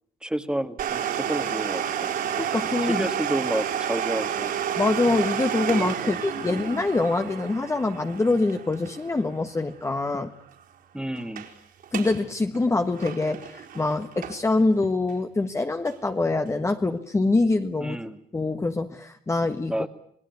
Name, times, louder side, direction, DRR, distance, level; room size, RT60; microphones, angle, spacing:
voice 1, 0.2-2.1 2.8-4.5 5.7-6.1 6.4-6.7 10.9-11.5 17.8-18.2 19.7-19.9, right 1 dB, 5° right, 10 dB, 1.9 m, -30 dB
Domestic sounds home sounds, 0.8-10.2 10.5-10.6 11.2-11.5 11.8-12.2 12.5-14.6 15.1-15.2 15.9-16.0, right 9 dB, 60° right, 4.4 m, -30 dB
voice 2, 2.4-3.1 4.8-10.3 11.9-18.0 18.3-19.7, left 3 dB, 15° left, 6 dB, 1.4 m, -25 dB
27.5 x 19.5 x 9.5 m, 0.66 s
cardioid pair, 110°, 17 cm